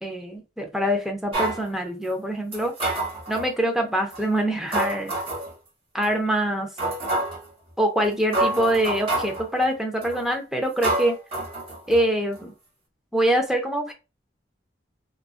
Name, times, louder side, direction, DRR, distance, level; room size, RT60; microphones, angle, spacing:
voice 1, 0.0-2.7 3.3-5.1 5.9-6.7 7.8-11.2 11.9-12.5 13.1-13.9, right 1 dB, 5° right, 2 dB, 0.5 m, -24 dB
sound 1, 1.3-1.6 2.5-3.5 4.1-4.2 4.7-5.5 6.0-6.1 6.8-7.4 8.0-8.1 8.3-9.4 10.0-10.3 10.8-12.0 12.3-12.4, right 2 dB, 30° right, 1.2 m, -27 dB
2.5 x 2.3 x 2.3 m, 0.29 s
head